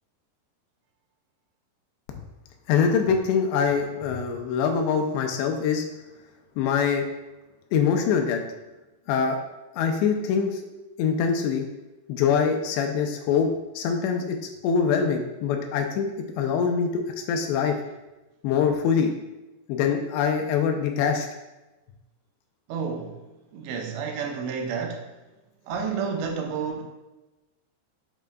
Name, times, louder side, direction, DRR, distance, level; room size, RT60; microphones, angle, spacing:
voice 1, 2.7-5.8 6.6-7.1 7.7-8.4 9.1-9.4 9.7-10.6 11.0-11.7 12.1-13.5 13.8-14.4 14.6-17.8 18.4-19.1 19.7-21.3, left 6 dB, 80° left, 4 dB, 2.8 m, -24 dB
voice 2, 22.7-23.2 23.5-25.0 25.7-26.9, right 6 dB, 80° right, 3 dB, 3.0 m, -30 dB
8.5 x 7.5 x 2.3 m, 1.1 s
omnidirectional pair, 5.1 m